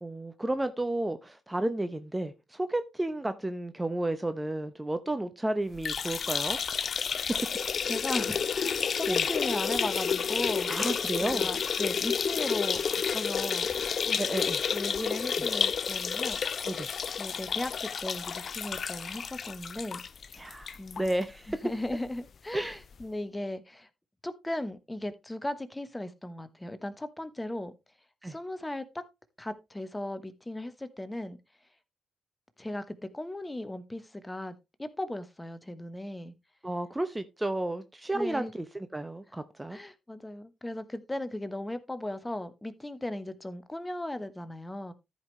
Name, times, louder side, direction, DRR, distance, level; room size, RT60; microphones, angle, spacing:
voice 1, 0.0-6.6 7.1-7.2 9.1-9.2 10.7-11.5 14.2-14.6 16.6-16.9 20.4-21.6 22.5-22.8 28.2-28.3 36.6-39.8, right 1 dB, 15° right, 0.8 m, -32 dB
sound 1, 5.7-21.1 21.5-21.6 21.9-22.0 23.0-23.1, left 6 dB, 50° left, 0.4 m, -30 dB
voice 2, 7.8-10.7 11.2-16.7 17.2-20.0 20.8-21.0 21.5-23.9 24.2-27.7 28.2-29.0 29.4-31.4 32.6-32.8 33.1-34.5 34.8-36.3 38.1-38.5 39.7-44.9, left 1 dB, 15° left, 1.2 m, -37 dB
14.0 x 5.2 x 3.1 m
hypercardioid pair, 40°, 0 cm